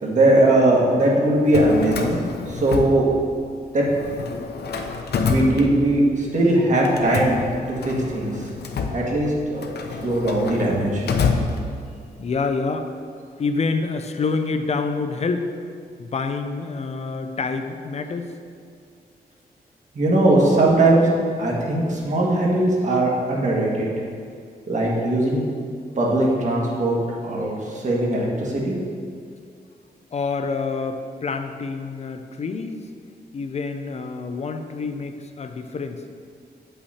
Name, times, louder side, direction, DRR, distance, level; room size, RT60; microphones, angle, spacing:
voice 1, 0.0-2.2 2.5-3.0 3.7-3.9 5.3-7.4 7.7-8.4 8.9-9.6 10.0-11.1 19.9-21.1 21.4-23.9 24.7-25.4 26.0-28.8, right 1 dB, 45° right, -3 dB, 1.5 m, -20 dB
Drawer open or close, 1.3-3.5 3.8-6.2 6.8-12.1, left 4 dB, 80° left, 0.7 m, -28 dB
voice 2, 12.2-12.9 13.4-15.5 16.0-18.3 30.1-32.9 33.3-36.0, left 4 dB, 40° left, 7 dB, 0.5 m, -27 dB
8.2 x 5.6 x 4.2 m, 2.3 s
wide cardioid pair, 145°, 17 cm